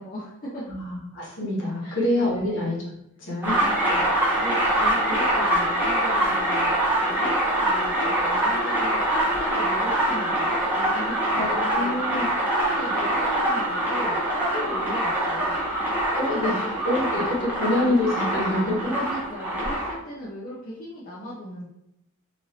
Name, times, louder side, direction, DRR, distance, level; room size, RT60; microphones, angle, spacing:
voice 1, 0.0-0.6 1.8-2.0 2.3-2.7 3.6-11.9 12.5-15.6 19.0-21.7, equal, 35° left, -7 dB, 0.5 m, -37 dB
voice 2, 0.7-2.8 3.3-3.6 11.3-12.3 16.1-19.0, left 1 dB, 60° left, -4 dB, 1.2 m, -26 dB
sound 1, 3.4-19.9, right 1 dB, 10° right, 0.7 m, -24 dB
3.1 x 2.5 x 2.7 m, 0.81 s
head